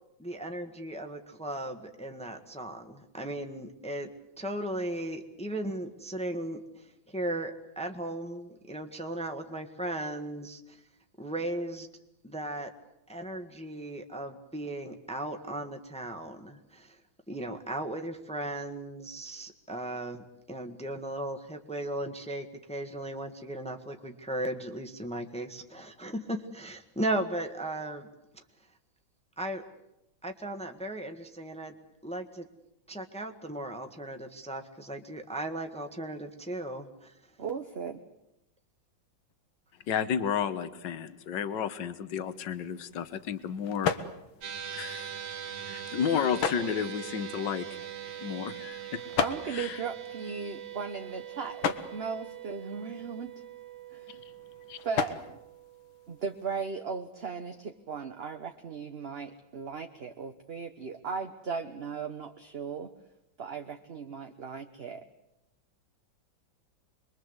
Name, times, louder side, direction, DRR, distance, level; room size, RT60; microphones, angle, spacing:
voice 1, 0.2-4.1 4.4-10.8 11.2-11.9 12.2-12.7 13.1-17.0 17.3-28.1 29.4-29.6 30.2-31.7 32.0-32.5 32.9-37.1, right 1 dB, 5° left, 5 dB, 1.4 m, -36 dB
voice 2, 37.4-38.0 49.2-53.3 53.9-54.0 54.8-55.4 56.1-62.9 63.4-65.0, right 5 dB, 40° right, 5 dB, 1.0 m, -37 dB
voice 3, 39.9-43.9 44.7-45.2 45.7-47.7 48.2-48.8 49.5-49.8 54.1-54.2 54.7-54.8, left 8 dB, 65° left, 12 dB, 1.8 m, -32 dB
sound 1, 42.2-56.6, left 7 dB, 90° left, 2.1 m, -38 dB
sound 2, 44.4-56.9, right 9 dB, 75° right, 2.5 m, -42 dB
27.0 x 22.5 x 8.1 m, 0.87 s
omnidirectional pair, 2.1 m